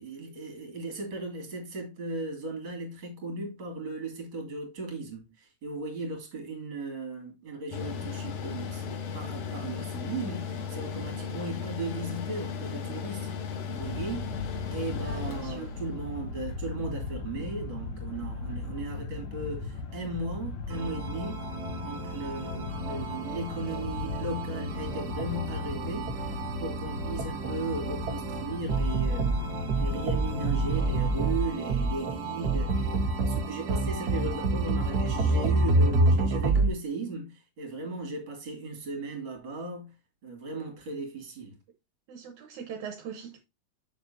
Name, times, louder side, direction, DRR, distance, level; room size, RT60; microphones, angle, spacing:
voice 1, 0.0-13.3 13.7-14.3 14.7-21.4 21.8-29.4 29.7-39.9 40.2-41.6, right 3 dB, 45° right, 3.1 m, -37 dB
Mechanical fan, 7.7-16.1, left 6 dB, 80° left, 2.7 m, -36 dB
sound 1, 13.8-31.4, left 4 dB, 65° left, 1.2 m, -37 dB
voice 2, 15.0-15.7 42.1-43.4, right 7 dB, 75° right, 2.4 m, -41 dB
sound 2, 20.7-36.7, right 2 dB, 60° right, 1.0 m, -29 dB
7.7 x 6.7 x 2.7 m
omnidirectional pair, 3.4 m